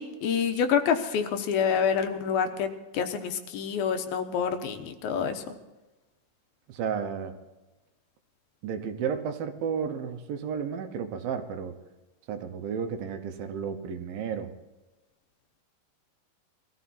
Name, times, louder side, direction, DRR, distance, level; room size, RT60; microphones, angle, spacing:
voice 1, 0.0-2.7 2.9-5.4, left 7 dB, 80° left, 7 dB, 2.9 m, -27 dB
voice 2, 6.7-7.4 8.6-11.8 12.3-14.5, right 7 dB, 80° right, 8 dB, 2.8 m, -32 dB
21.5 x 14.0 x 4.3 m, 1.1 s
omnidirectional pair, 4.2 m